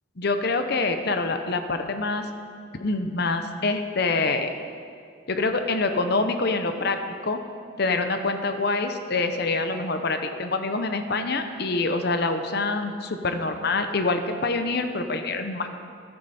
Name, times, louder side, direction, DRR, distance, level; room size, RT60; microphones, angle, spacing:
voice 1, 0.2-2.3 2.7-4.5 5.3-7.4 7.8-15.7, left 3 dB, 55° left, 7 dB, 0.8 m, -26 dB
14.5 x 12.5 x 4.3 m, 2.4 s
head